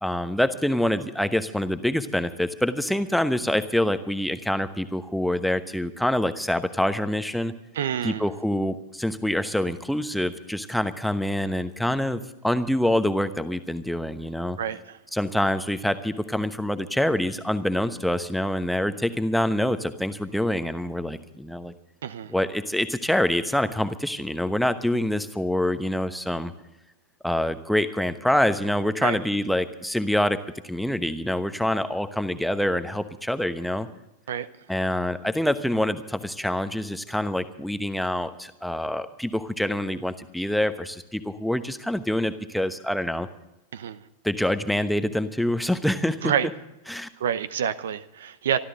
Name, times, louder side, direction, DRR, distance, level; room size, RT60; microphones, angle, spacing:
voice 1, 0.0-7.5 8.0-14.6 15.1-21.7 22.3-26.5 27.2-33.9 34.7-43.3 44.2-46.3 46.9-47.1, left 1 dB, ahead, 10 dB, 1.0 m, -26 dB
voice 2, 7.7-8.3 14.6-15.0 22.0-22.3 29.0-29.2 34.3-34.5 43.7-44.0 46.2-46.5 47.2-48.6, right 8 dB, 60° right, 15 dB, 0.7 m, -27 dB
25.0 x 13.0 x 3.8 m, 0.92 s
figure-of-eight pair, 90°, 0 cm